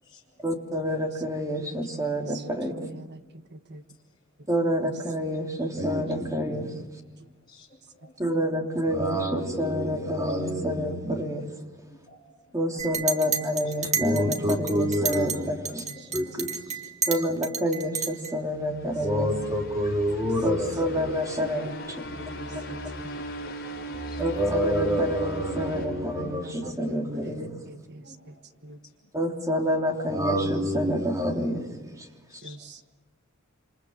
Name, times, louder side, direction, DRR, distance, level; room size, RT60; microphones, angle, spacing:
voice 1, 0.4-2.9 4.5-6.8 8.2-11.4 12.5-15.8 16.1-16.6 17.1-21.7 22.5-22.7 24.2-27.6 29.1-32.1, equal, 15° right, 2 dB, 3.1 m, -27 dB
voice 2, 2.1-3.2 3.5-3.8 16.1-16.2 21.5-21.7 22.4-22.8 26.4-27.3 27.7-28.3 28.6-28.8 32.4-32.8, right 2 dB, 55° right, 9 dB, 1.5 m, -43 dB
voice 3, 7.5-8.1 12.1-12.2 12.5-12.6 16.1-16.8 22.1-22.4 22.7-22.8 23.1-24.2 28.0-28.3 32.3-32.7, left 2 dB, 20° left, -4 dB, 6.7 m, -52 dB
Chink clink, 12.8-15.4 15.7-18.3, right 6 dB, 35° right, 2.4 m, -30 dB
sound 1, 18.4-26.7, right 1 dB, 50° left, 6.0 m, -38 dB
27.5 x 27.0 x 7.4 m, 1.2 s
head